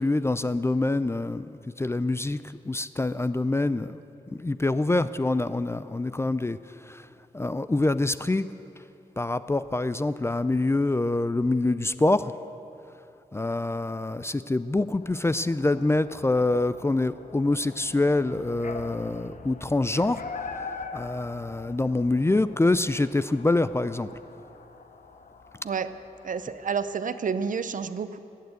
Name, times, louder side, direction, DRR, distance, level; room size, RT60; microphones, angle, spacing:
voice 1, 0.0-2.4 2.7-4.0 4.3-6.6 6.8-7.1 7.3-8.5 9.2-12.4 13.3-24.1, left 2 dB, 15° left, 14 dB, 0.4 m, -25 dB
sound 1, 15.0-26.9, left 4 dB, 60° left, 1.0 m, -43 dB
voice 2, 26.2-28.2, right 6 dB, 60° right, 12 dB, 0.6 m, -29 dB
16.0 x 9.4 x 8.2 m, 2.7 s
cardioid pair, 75°, 15 cm